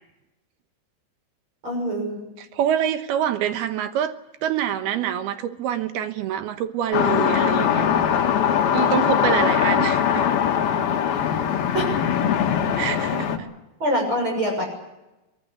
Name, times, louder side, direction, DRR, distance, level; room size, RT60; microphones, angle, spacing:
voice 1, 1.6-2.3 11.7-12.1 13.8-14.7, right 1 dB, 25° right, 7.2 m, -25 dB
voice 2, 2.4-4.1 4.4-8.3 8.7-10.2 12.8-13.5, right 10 dB, 70° right, 2.8 m, -26 dB
sound 1, 6.9-13.4, left 8 dB, 60° left, 3.3 m, -21 dB
24.0 x 19.5 x 8.2 m
omnidirectional pair, 5.2 m